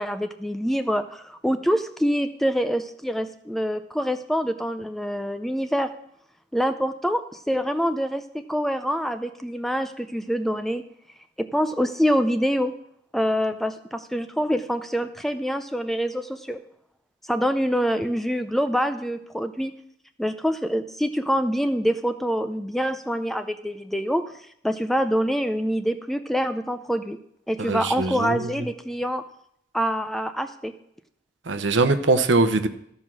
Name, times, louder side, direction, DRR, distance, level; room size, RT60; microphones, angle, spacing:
voice 1, 0.0-5.9 6.5-10.8 11.4-12.7 13.1-16.6 17.3-19.7 20.2-24.2 24.6-27.2 27.5-29.2 29.7-30.7, equal, ahead, 9 dB, 0.4 m, -25 dB
voice 2, 27.7-28.4 31.5-32.7, right 3 dB, 80° right, 9 dB, 0.9 m, -21 dB
14.0 x 5.5 x 6.1 m, 0.73 s
head